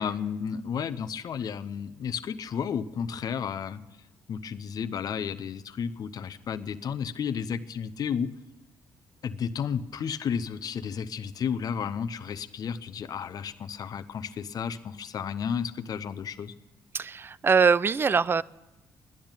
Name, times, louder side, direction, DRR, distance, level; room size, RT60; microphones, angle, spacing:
voice 1, 0.0-3.8 4.3-8.3 9.2-16.5, left 7 dB, 55° left, 0.8 m, -32 dB
voice 2, 16.9-18.4, right 5 dB, 30° right, 0.4 m, -22 dB
12.0 x 10.5 x 9.0 m
cardioid pair, 85°, 8 cm